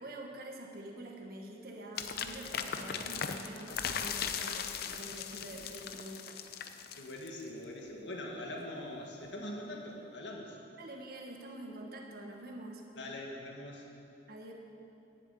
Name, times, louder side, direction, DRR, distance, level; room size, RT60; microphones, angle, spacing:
voice 1, 0.0-6.4 10.8-12.8 14.3-14.5, right 1 dB, 55° right, 0 dB, 1.3 m, -46 dB
sound 1, 2.0-7.5, left 7 dB, 60° left, 0.6 m, -38 dB
voice 2, 7.0-10.6 13.0-13.8, left 1 dB, 75° left, 0 dB, 1.8 m, -43 dB
11.0 x 7.5 x 8.4 m, 2.8 s
head